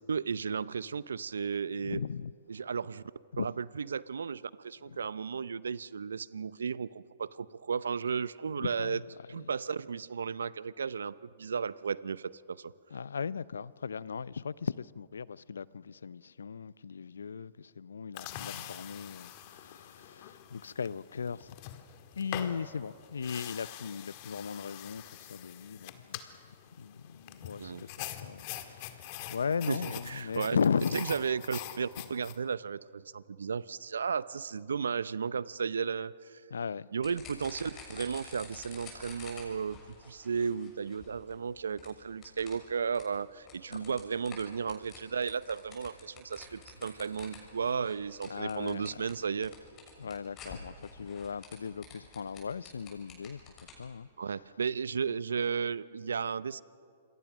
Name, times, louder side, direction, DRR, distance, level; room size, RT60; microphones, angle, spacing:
voice 1, 0.1-2.0 2.5-3.0 3.4-9.0 9.3-12.7 27.6-27.9 29.7-30.6 30.9-36.4 36.9-39.8 40.1-49.6 54.2-56.6, right 6 dB, 80° right, 0.6 m, -34 dB
voice 2, 1.8-2.3 3.3-3.5 4.9-5.0 8.6-9.0 12.9-21.6 22.1-26.2 26.5-31.0 36.5-36.9 43.7-43.9 48.3-49.1 50.0-53.4 53.8-54.4, left 6 dB, 80° left, 0.5 m, -37 dB
sound 1, 18.2-32.4, left 12 dB, 45° left, 1.8 m, -45 dB
sound 2, 37.0-53.9, left 4 dB, 30° left, 6.3 m, -51 dB
27.0 x 22.0 x 6.1 m
hypercardioid pair, 120°, 0 cm